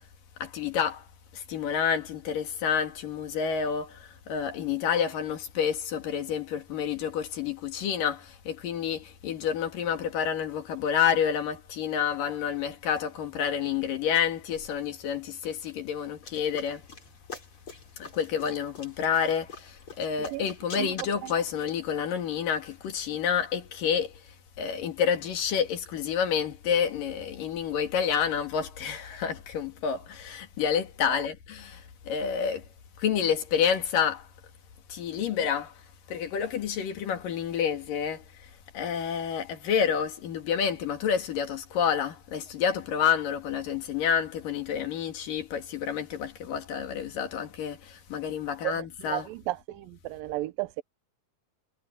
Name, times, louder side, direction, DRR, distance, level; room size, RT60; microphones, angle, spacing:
voice 1, 0.4-1.0 1.3-16.8 18.0-24.2 24.6-32.6 33.0-34.3 34.9-35.7 36.1-38.2 38.7-49.3, left 7 dB, 75° left, 3.8 m, -29 dB
sound 1, 16.2-23.0, left 4 dB, 35° left, 5.6 m, -46 dB
voice 2, 48.6-50.8, right 18 dB, 90° right, 2.4 m, -34 dB
omnidirectional pair, 3.9 m